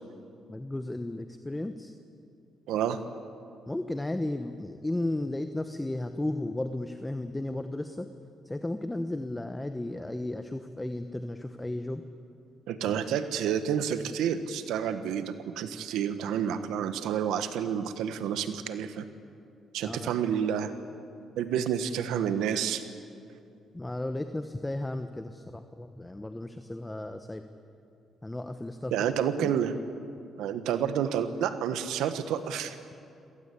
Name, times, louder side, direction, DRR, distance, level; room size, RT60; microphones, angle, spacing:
voice 1, 0.5-1.9 3.7-8.1 8.4-12.0 12.8-13.0 19.8-20.1 23.7-27.4 28.2-28.9 29.4-29.5, left 1 dB, 10° left, 8 dB, 1.0 m, -34 dB
voice 2, 2.7-3.0 12.7-19.0 19.7-20.7 21.4-22.8 28.9-29.7 30.4-32.8, right 8 dB, 85° right, 10 dB, 1.4 m, -29 dB
27.0 x 17.5 x 8.5 m, 2.5 s
cardioid pair, 90°, 0 cm